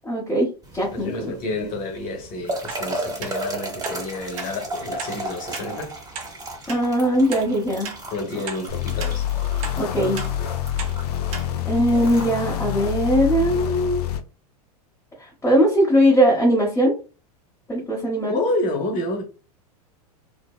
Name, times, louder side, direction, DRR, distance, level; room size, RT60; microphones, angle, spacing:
voice 1, 0.1-1.3 6.7-7.9 9.8-10.2 11.7-14.1 15.2-17.0 17.7-18.4, equal, 10° left, 0.9 m, -20 dB
sound 1, 0.6-13.6, right 2 dB, 20° right, 0.9 m, -36 dB
voice 2, 0.9-5.9 8.1-9.3 18.3-19.2, left 2 dB, 45° left, 0.9 m, -29 dB
sound 2, 2.7-2.8 3.2-3.3 3.8-4.0 4.4-4.5 5.0-5.2 5.5-5.7 6.1-6.3 6.7-6.8 7.3-7.5 7.8-8.0 8.5-8.6 9.0-9.2 9.6-9.8 10.2-10.3 10.8-10.9 11.3-11.5 11.9-12.0, right 5 dB, 60° right, 0.6 m, -34 dB
sound 3, 8.7-14.2, left 10 dB, 75° left, 0.4 m, -26 dB
2.7 x 2.1 x 2.3 m
hypercardioid pair, 100°, 20 cm